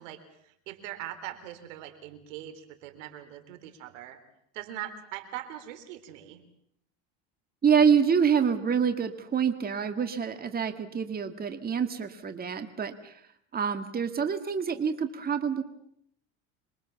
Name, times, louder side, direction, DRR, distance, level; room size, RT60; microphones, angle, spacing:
voice 1, 0.0-4.2 4.5-6.5, right 12 dB, 90° right, 10 dB, 3.8 m, -41 dB
voice 2, 7.6-13.1 13.5-15.6, right 7 dB, 25° right, 8 dB, 2.0 m, -26 dB
27.0 x 22.5 x 7.1 m, 0.71 s
supercardioid pair, 115°, 37 cm